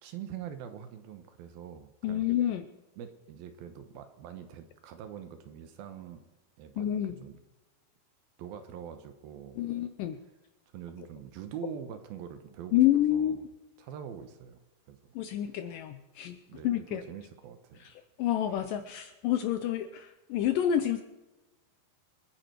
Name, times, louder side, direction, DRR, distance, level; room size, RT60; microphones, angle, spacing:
voice 1, 0.0-2.3 3.0-6.2 6.6-7.4 8.4-9.6 10.7-12.8 13.1-13.4 13.8-14.6 14.9-15.2 16.5-17.9, right 8 dB, 75° right, 9 dB, 2.8 m, -44 dB
voice 2, 2.0-2.7 6.8-7.2 9.6-10.2 12.7-13.5 15.2-17.1 17.8-21.0, left 11 dB, 80° left, 10 dB, 2.0 m, -29 dB
27.0 x 9.8 x 4.5 m, 1.1 s
omnidirectional pair, 4.6 m